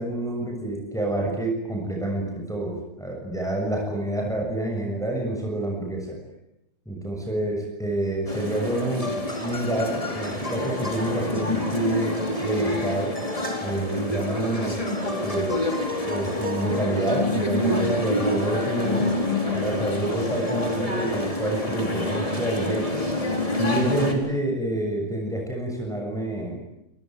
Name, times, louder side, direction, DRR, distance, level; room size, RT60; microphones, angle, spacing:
voice 1, 0.0-6.2 6.9-9.2 9.4-12.1 12.4-13.1 13.6-14.8 15.2-15.6 16.0-19.1 19.5-23.1 23.6-26.6, right 1 dB, ahead, 0 dB, 6.9 m, -28 dB
sound 1, 8.3-24.1, left 1 dB, 20° left, 4.4 m, -27 dB
28.0 x 22.0 x 9.3 m, 0.85 s
omnidirectional pair, 1.7 m